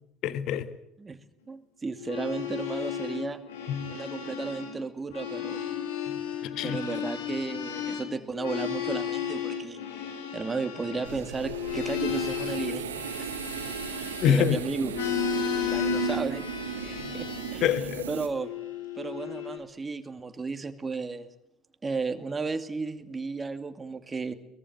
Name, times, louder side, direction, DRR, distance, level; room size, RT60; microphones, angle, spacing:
voice 1, 0.2-0.7 3.7-3.9 6.1-6.8 14.2-14.6 17.0-17.2 17.6-18.1, left 9 dB, 50° left, 1.4 m, -26 dB
voice 2, 1.5-3.4 3.9-5.6 6.6-9.8 10.3-13.3 13.9-14.9 15.3-16.4 16.8-17.7 18.1-18.5 19.0-21.3 21.8-24.3, right 4 dB, 20° right, 2.4 m, -34 dB
sound 1, 1.9-4.8 5.0-14.5 14.9-17.7 18.3-19.6, left 6 dB, 70° left, 4.6 m, -33 dB
sound 2, 11.0-18.3, right 8 dB, 75° right, 2.2 m, -37 dB
23.5 x 20.5 x 9.0 m
figure-of-eight pair, 60°, 0 cm